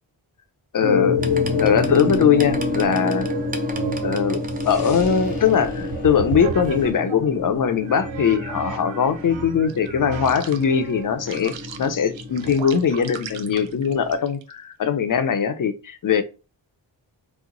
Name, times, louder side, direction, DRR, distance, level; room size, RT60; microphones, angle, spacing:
voice 1, 0.7-1.2 1.6-3.3 4.0-4.4 4.6-16.2, left 7 dB, 45° left, 0.5 m, -21 dB
sound 1, 0.8-14.1, left 3 dB, 85° left, 1.0 m, -28 dB
sound 2, 1.2-6.9, right 3 dB, 20° right, 0.4 m, -37 dB
sound 3, 2.3-7.3 7.9-14.5, right 8 dB, 75° right, 0.5 m, -36 dB
3.0 x 2.1 x 3.7 m
cardioid pair, 65°, 46 cm